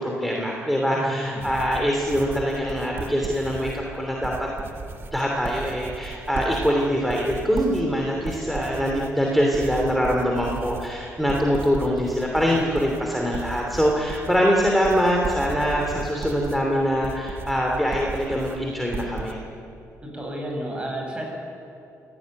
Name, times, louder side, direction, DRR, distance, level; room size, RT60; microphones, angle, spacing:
voice 1, 0.0-4.5 5.1-19.4, equal, ahead, -1 dB, 2.9 m, -23 dB
voice 2, 0.9-1.4 12.5-12.6 20.0-21.2, right 1 dB, 20° right, 0 dB, 7.9 m, -32 dB
sound 1, 1.4-19.3, right 4 dB, 40° right, 1.7 m, -36 dB
26.0 x 17.5 x 9.7 m, 2.6 s
cardioid pair, 135°, 6 cm